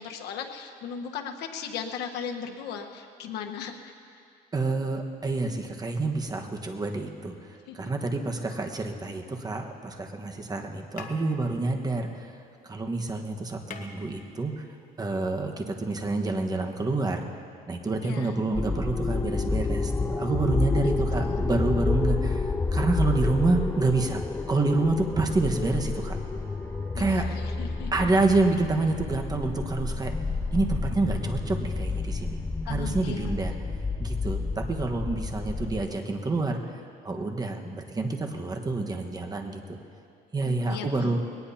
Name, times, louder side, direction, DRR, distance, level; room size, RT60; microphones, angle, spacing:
voice 1, 0.0-3.9 7.7-7.8 18.0-18.4 20.8-21.3 26.9-28.1 32.7-33.4 40.4-41.2, left 7 dB, 80° left, 3 dB, 1.3 m, -37 dB
voice 2, 4.5-7.3 7.7-12.3 12.6-14.6 15.0-17.3 17.7-24.2 24.5-26.2 26.9-27.3 27.9-30.1 30.5-32.4 32.6-33.5 34.0-39.8 40.3-41.2, right 3 dB, 25° right, 3 dB, 1.4 m, -28 dB
sound 1, 8.5-9.6 10.5-10.7 10.9-12.8 13.1-13.2 13.4-14.8 16.0-16.1, left 4 dB, 50° left, 1.5 m, -47 dB
sound 2, 18.5-35.9, left 3 dB, 15° left, 0.4 m, -29 dB
sound 3, 25.1-32.4, right 2 dB, 70° right, 1.7 m, -51 dB
21.0 x 18.5 x 2.9 m, 2.5 s
cardioid pair, 110°, 17 cm